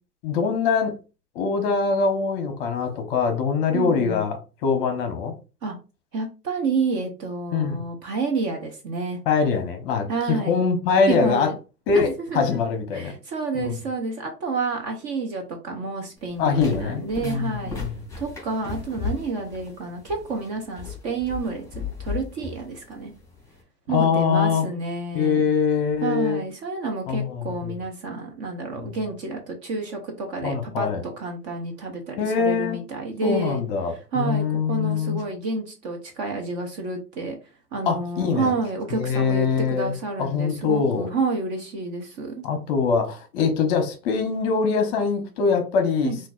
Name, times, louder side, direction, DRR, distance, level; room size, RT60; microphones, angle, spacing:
voice 1, 0.2-1.0 1.3-5.3 7.5-7.8 9.3-11.5 11.9-13.1 13.5-13.8 16.4-18.0 23.9-24.7 25.1-26.4 27.1-27.8 30.4-31.0 32.2-32.8 33.2-35.2 37.9-38.5 38.9-39.9 40.2-41.1 42.4-46.1, left 5 dB, 35° left, 0.9 m, -23 dB
voice 2, 3.7-4.3 5.6-5.8 6.1-9.2 10.1-10.6 11.1-11.5 11.9-12.6 12.9-17.8 18.2-23.1 23.9-25.4 26.0-30.9 31.2-33.6 34.1-37.3 37.7-42.4 46.0-46.2, right 3 dB, 25° right, 0.7 m, -29 dB
sound 1, 16.2-23.6, left 5 dB, 5° left, 2.4 m, -36 dB
5.7 x 2.6 x 2.4 m
hypercardioid pair, 125°, 48 cm